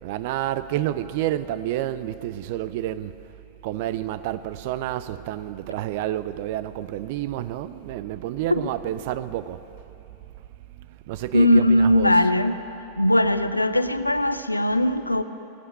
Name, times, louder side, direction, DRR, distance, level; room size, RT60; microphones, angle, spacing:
voice 1, 0.0-3.1 3.6-9.6 11.1-12.2, right 13 dB, 50° right, 0.4 m, -29 dB
voice 2, 11.3-12.6 13.0-15.2, left 1 dB, 85° left, 0.5 m, -19 dB
18.0 x 7.8 x 8.9 m
figure-of-eight pair, 90°, 0 cm